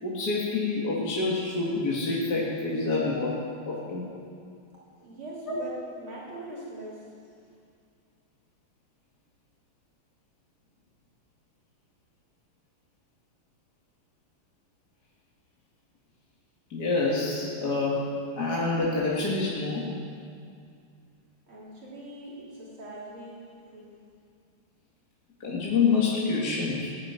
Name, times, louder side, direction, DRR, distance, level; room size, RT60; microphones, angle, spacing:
voice 1, 0.0-4.0 5.4-5.6 16.7-18.1 18.4-19.9 25.4-26.9, left 3 dB, 50° left, -5 dB, 2.4 m, -27 dB
voice 2, 5.0-5.7 6.0-7.0 21.5-23.4 23.7-23.9, right 1 dB, 75° right, -7 dB, 4.3 m, -42 dB
18.0 x 7.6 x 9.1 m, 2.3 s
omnidirectional pair, 2.4 m